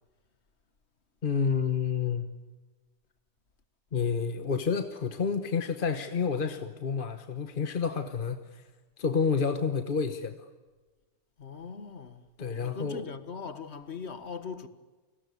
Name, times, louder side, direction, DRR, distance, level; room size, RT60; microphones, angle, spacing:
voice 1, 1.2-2.3 3.9-8.6 9.0-10.5 12.4-13.1, left 6 dB, 50° left, 1.3 m, -29 dB
voice 2, 11.4-14.7, left 5 dB, 90° left, 1.9 m, -40 dB
29.0 x 19.5 x 9.6 m
omnidirectional pair, 1.1 m